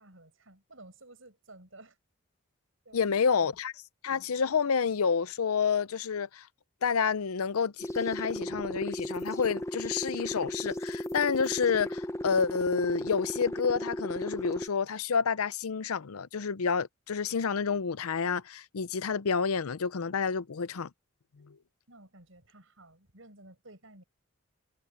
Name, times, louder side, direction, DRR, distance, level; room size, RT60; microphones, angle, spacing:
voice 1, 0.0-2.0 2.8-3.6 21.9-24.0, right 2 dB, 65° right, 7.5 m, -54 dB
voice 2, 2.9-3.7 4.0-6.5 6.8-20.9 21.4-21.6, left 6 dB, 90° left, 0.6 m, -29 dB
sound 1, 7.8-14.7, left 1 dB, 15° left, 0.7 m, -36 dB
head